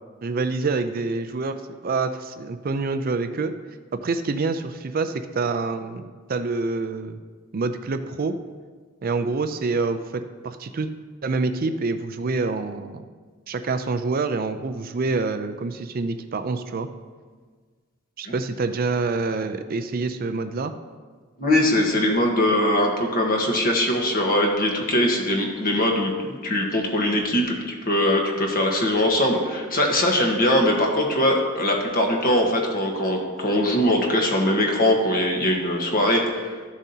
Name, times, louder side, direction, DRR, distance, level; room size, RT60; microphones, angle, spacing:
voice 1, 0.2-3.5 3.9-7.2 7.5-8.4 9.0-10.9 11.2-13.1 13.5-16.9 18.2-20.7, right 3 dB, 45° right, 9 dB, 0.4 m, -26 dB
voice 2, 21.4-36.6, left 1 dB, 45° left, 1 dB, 1.3 m, -21 dB
13.0 x 7.2 x 2.8 m, 1.5 s
head